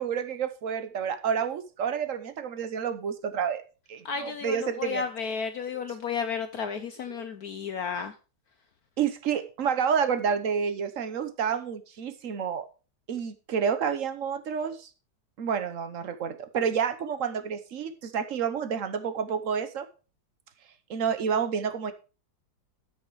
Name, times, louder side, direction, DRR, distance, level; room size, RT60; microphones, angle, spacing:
voice 1, 0.0-3.6 3.9-5.0 5.7-6.0 7.1-7.2 9.0-12.6 13.1-14.9 15.4-19.9 20.9-21.9, right 7 dB, 50° right, 10 dB, 1.1 m, -29 dB
voice 2, 4.0-8.1, left 6 dB, 60° left, 9 dB, 1.1 m, -33 dB
13.0 x 6.5 x 4.8 m, 0.34 s
omnidirectional pair, 2.1 m